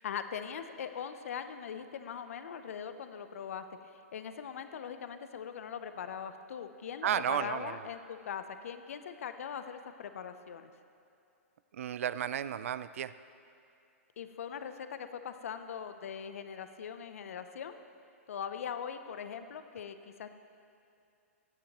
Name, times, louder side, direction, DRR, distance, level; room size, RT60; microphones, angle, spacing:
voice 1, 0.0-3.6 4.1-10.7 14.2-17.8 18.3-20.3, left 7 dB, 70° left, 9 dB, 0.6 m, -41 dB
voice 2, 7.0-7.8 11.7-13.1, right 9 dB, 70° right, 15 dB, 0.3 m, -33 dB
16.0 x 8.4 x 3.0 m, 2.6 s
hypercardioid pair, 125°, 8 cm